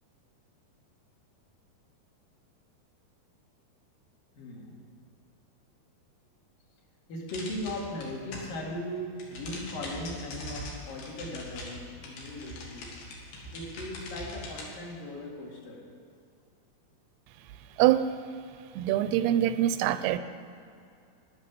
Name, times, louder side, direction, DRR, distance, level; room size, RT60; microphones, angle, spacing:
voice 1, 4.4-4.9 7.1-12.9 13.5-15.9, left 1 dB, 60° left, -2 dB, 3.5 m, -38 dB
sound 1, 7.3-8.7 9.0-14.6, left 1 dB, 90° left, 4.1 m, -42 dB
voice 2, 17.8-18.1 18.8-20.2, right 12 dB, 90° right, 12 dB, 2.6 m, -24 dB
12.0 x 11.0 x 6.9 m, 2.4 s
omnidirectional pair, 4.5 m